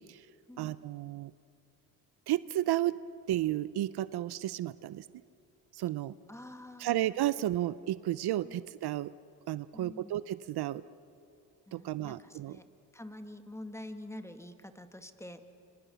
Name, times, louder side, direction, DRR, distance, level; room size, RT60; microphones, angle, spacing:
voice 1, 0.6-1.3 2.3-3.0 3.3-5.0 5.7-6.1 6.8-9.1 9.5-10.8 11.7-12.6, right 14 dB, 70° right, 17 dB, 0.6 m, -32 dB
voice 2, 6.3-7.0 8.4-8.6 9.7-10.2 11.7-12.7 12.9-15.4, left 1 dB, 5° left, 7 dB, 1.9 m, -46 dB
26.0 x 25.0 x 7.0 m, 2.5 s
supercardioid pair, 65°, 40 cm